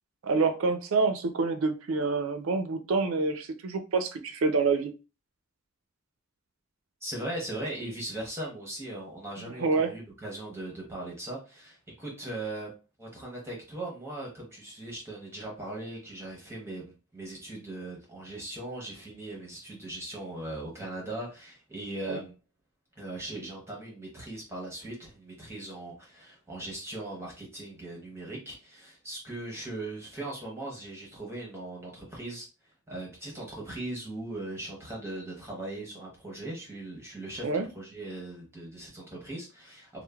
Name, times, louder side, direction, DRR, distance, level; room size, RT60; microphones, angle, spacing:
voice 1, 0.2-4.9 9.6-9.9 22.1-22.2 37.4-37.7, right 4 dB, 75° right, 9 dB, 0.4 m, -27 dB
voice 2, 7.0-12.7 13.0-22.3 23.0-32.5 32.9-40.0, right 2 dB, 10° right, -3 dB, 0.7 m, -39 dB
3.1 x 2.1 x 2.3 m, 0.32 s
head